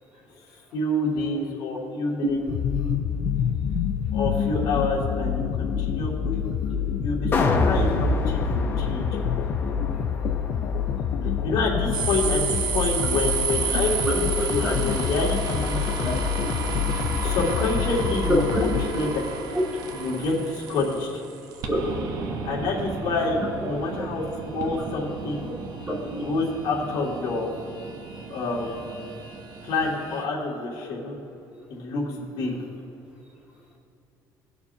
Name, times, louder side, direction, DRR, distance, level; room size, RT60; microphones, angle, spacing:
voice 1, 0.7-2.4 4.1-6.6 7.0-9.1 11.4-14.1 14.5-16.1 17.2-19.2 19.9-21.2 22.4-25.5 26.2-27.5 28.3-29.1 29.6-31.2 31.7-32.5, left 2 dB, 70° left, -4 dB, 2.4 m, -28 dB
sound 1, 2.5-18.8, left 8 dB, 45° left, 0.4 m, -27 dB
sound 2, 7.3-13.5 13.9-14.0, left 2 dB, 25° left, 0.8 m, -28 dB
sound 3, 11.9-30.2, right 6 dB, 50° right, 0.9 m, -33 dB
voice 2, 14.0-14.8 16.0-16.5 18.3-18.7 19.5-19.6 21.6-21.8 23.4-23.5 25.9-26.0, equal, 15° right, -5 dB, 2.1 m, -26 dB
18.0 x 6.8 x 2.8 m, 2.7 s
cardioid pair, 175°, 8 cm